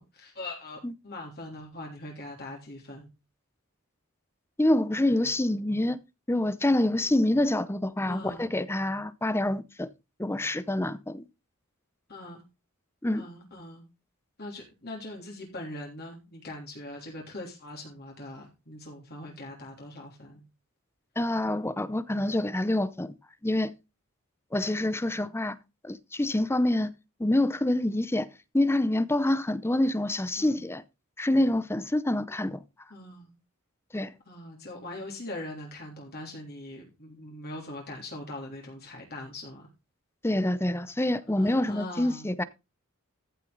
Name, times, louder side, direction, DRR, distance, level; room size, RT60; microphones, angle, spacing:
voice 1, 0.0-3.1 8.0-8.5 12.1-12.4 13.1-13.8 14.4-20.4 25.0-25.3 30.4-30.6 32.9-33.4 34.3-39.7 41.4-42.3, left 1 dB, 45° left, 3.3 m, -41 dB
voice 2, 4.6-6.0 6.3-9.9 10.2-11.3 13.0-13.2 21.2-23.1 23.4-23.7 24.5-25.5 25.8-26.9 27.2-28.3 28.5-30.8 31.2-32.6 33.9-34.1 40.2-42.4, left 1 dB, 10° left, 0.6 m, -26 dB
14.5 x 6.2 x 3.9 m
head